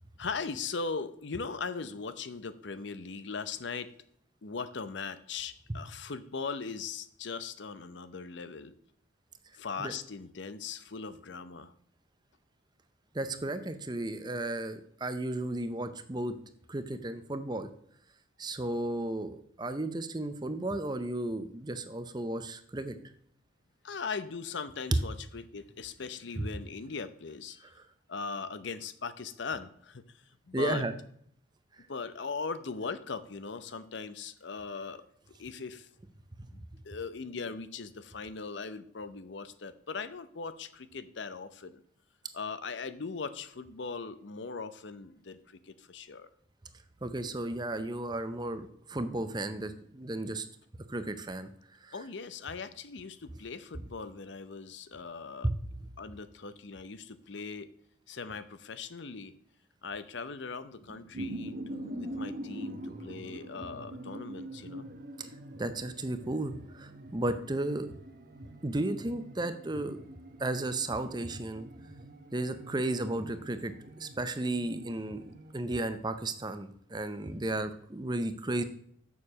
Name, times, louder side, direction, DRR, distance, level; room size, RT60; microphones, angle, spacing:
voice 1, 0.2-3.9 4.4-8.7 9.5-11.7 23.8-27.7 28.1-30.9 31.9-35.0 35.4-35.9 36.5-41.8 42.3-46.3 51.9-55.5 56.0-57.7 58.1-59.3 59.8-64.9, left 4 dB, 65° left, 13 dB, 0.6 m, -39 dB
voice 2, 13.1-16.3 16.7-17.7 18.4-23.0 30.5-30.9 36.4-36.5 47.0-50.4 50.9-51.5 51.8-51.9 55.4-55.6 65.2-65.3 65.6-67.9 68.6-70.0 70.4-71.7 72.3-73.7 74.0-78.6, right 2 dB, 20° right, 10 dB, 0.6 m, -34 dB
sound 1, 60.8-75.5, right 1 dB, 45° right, 0.9 m, -44 dB
7.0 x 6.7 x 6.2 m, 0.66 s
head